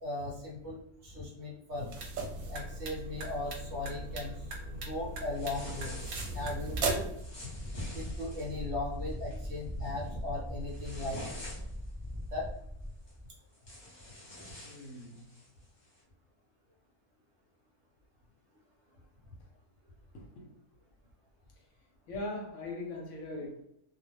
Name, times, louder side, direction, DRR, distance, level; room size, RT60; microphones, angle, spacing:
voice 1, 0.0-1.9 2.5-5.9 6.3-7.1 7.9-11.2 12.3-12.5, left 2 dB, 55° right, 1.0 m, -38 dB
sound 1, 1.7-7.2, right 3 dB, 80° right, 1.0 m, -38 dB
sound 2, 5.3-6.5 7.2-8.6 9.1-9.4 9.8-10.1 10.5-11.9 13.1-13.2 13.5-15.5, left 1 dB, 25° left, 0.7 m, -46 dB
Wind, 6.1-13.3, equal, 30° right, 0.5 m, -41 dB
voice 2, 14.6-15.3 20.1-20.6 22.1-23.6, left 2 dB, 65° left, 0.9 m, -40 dB
2.4 x 2.1 x 3.2 m
omnidirectional pair, 1.5 m